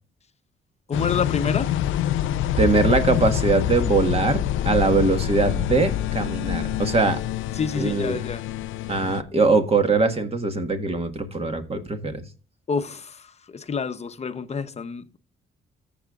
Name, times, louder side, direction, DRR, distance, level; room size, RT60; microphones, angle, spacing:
sound 1, 0.9-9.2, left 12 dB, 85° left, 0.5 m, -26 dB
voice 1, 0.9-1.7 7.5-8.4 12.7-15.2, left 5 dB, 35° left, 0.9 m, -28 dB
voice 2, 2.6-7.2 7.8-8.2 8.9-12.1, right 3 dB, 30° right, 1.6 m, -22 dB
14.0 x 7.0 x 2.4 m
cardioid pair, 90°, 20 cm